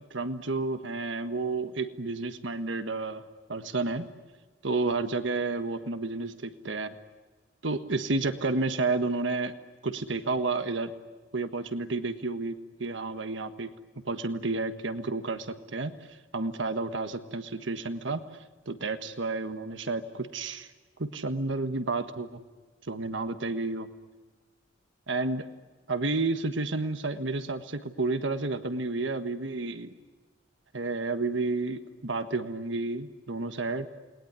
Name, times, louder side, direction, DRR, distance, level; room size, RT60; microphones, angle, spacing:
voice 1, 0.1-3.2 3.5-4.1 4.6-7.0 7.6-9.5 9.8-10.9 11.3-13.7 14.0-18.2 18.7-20.7 21.0-22.4 22.9-23.9 25.1-25.5 25.9-29.9 30.7-33.9, right 3 dB, 70° right, 9 dB, 1.5 m, -31 dB
29.5 x 21.0 x 9.6 m, 1.3 s
head